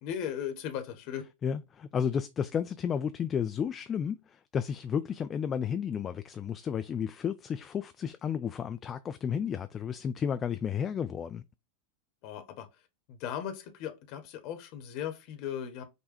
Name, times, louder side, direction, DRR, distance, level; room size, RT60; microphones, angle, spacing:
voice 1, 0.0-1.3 12.2-12.7 13.1-15.8, left 9 dB, 45° left, 0.9 m, -37 dB
voice 2, 1.4-11.4, left 7 dB, 25° left, 0.3 m, -32 dB
5.4 x 2.2 x 4.3 m
figure-of-eight pair, 90°, 0 cm